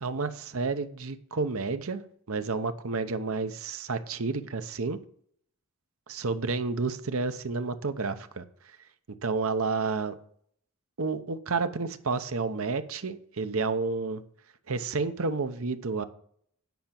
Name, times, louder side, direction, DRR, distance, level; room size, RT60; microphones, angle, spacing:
voice 1, 0.0-2.0 2.3-5.0 6.1-8.8 9.2-10.1 11.0-14.2 14.7-16.0, right 4 dB, 65° right, 10 dB, 0.8 m, -30 dB
9.3 x 5.8 x 7.5 m, 0.64 s
head